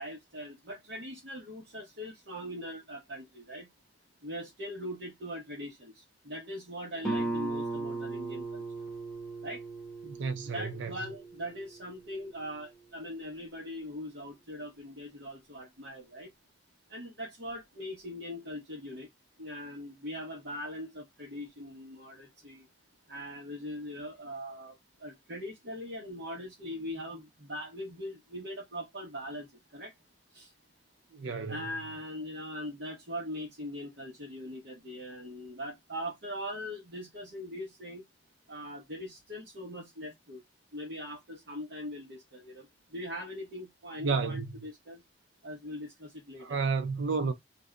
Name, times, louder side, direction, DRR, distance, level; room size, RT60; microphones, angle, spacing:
voice 1, 0.0-3.7 4.2-8.6 9.4-9.6 10.5-16.3 16.9-19.1 19.4-22.7 23.1-29.5 29.7-29.9 30.3-30.5 31.5-38.0 38.5-40.4 40.7-45.0 45.4-46.6, equal, 65° right, 1.0 m, -41 dB
Guitar, 7.0-12.5, right 3 dB, 5° left, 0.9 m, -37 dB
voice 2, 10.0-10.9 31.1-31.7 44.0-44.5 46.4-47.3, right 4 dB, 85° right, 0.5 m, -31 dB
2.6 x 2.2 x 3.5 m
head